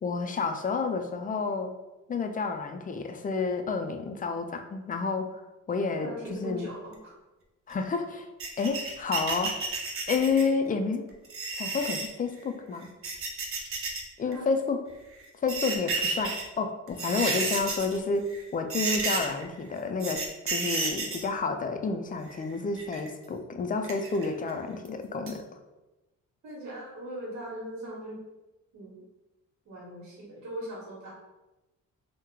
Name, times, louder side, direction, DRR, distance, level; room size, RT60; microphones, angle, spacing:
voice 1, 0.0-1.7 2.1-5.4 5.7-6.7 7.7-8.3 8.6-9.6 10.1-11.1 11.5-12.9 14.2-14.8 15.4-25.4, left 4 dB, 30° left, 6 dB, 0.4 m, -30 dB
voice 2, 5.9-7.1 14.2-14.5 26.4-28.2 28.7-29.0 29.6-31.1, right 1 dB, 65° right, -4 dB, 1.2 m, -40 dB
sound 1, 8.4-10.5 11.3-12.1 12.8-14.0 14.3-14.4 15.2-16.4 16.9-18.0 18.3-18.4 18.7-19.4 20.0-21.3 22.3-23.1 23.8-24.5 24.9-25.0 25.3-25.4, right 3 dB, 45° right, 0.6 m, -31 dB
2.9 x 2.1 x 3.6 m, 1.1 s
cardioid pair, 90°, 30 cm